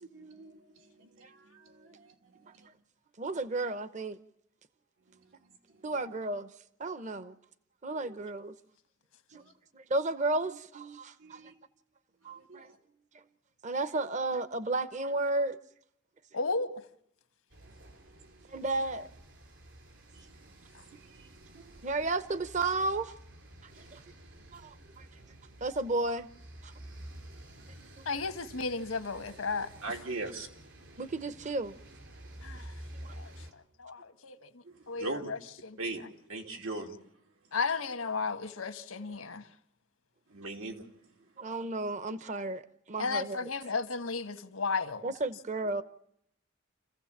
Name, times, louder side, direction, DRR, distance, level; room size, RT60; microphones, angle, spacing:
voice 1, 0.1-2.7 5.8-5.9 9.3-9.5 11.2-11.5 12.4-12.7 17.6-17.7 18.2-18.3 20.1-20.5 20.9-21.7 29.8-30.5 34.6-35.3 35.8-36.0 36.3-36.9 40.3-40.8, right 2 dB, 85° right, 3.0 m, -41 dB
voice 2, 3.2-4.2 5.8-6.5 6.8-7.3 7.8-8.5 9.7-11.5 12.2-12.7 13.6-15.6 18.5-19.1 21.8-23.1 23.9-24.0 24.5-25.1 25.6-26.3 26.6-26.7 31.0-31.7 32.9-33.2 41.4-42.6 42.9-43.4 45.0-45.8, right 2 dB, 35° right, 0.8 m, -33 dB
voice 3, 16.3-16.8 20.7-20.8 28.0-30.0 32.4-32.7 33.1-35.8 37.5-39.5 43.0-45.1, left 4 dB, 90° left, 1.4 m, -34 dB
sound 1, 17.5-33.5, right 1 dB, 60° right, 3.8 m, -51 dB
28.0 x 15.5 x 7.3 m
head